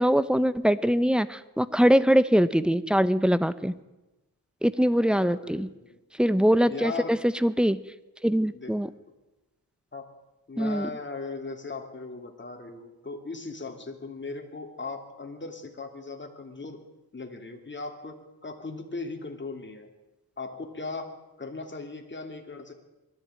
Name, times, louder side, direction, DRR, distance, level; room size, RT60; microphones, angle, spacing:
voice 1, 0.0-3.7 4.6-5.7 6.2-7.8 8.2-8.9 10.6-10.9, equal, ahead, 15 dB, 0.8 m, -23 dB
voice 2, 5.2-6.0 6.7-7.1 8.5-8.7 9.9-10.1 10.5-16.8 17.1-18.2 18.4-19.9 20.4-22.7, left 3 dB, 30° left, 4 dB, 2.8 m, -38 dB
21.0 x 13.5 x 9.1 m, 1.0 s
wide cardioid pair, 115°, 39 cm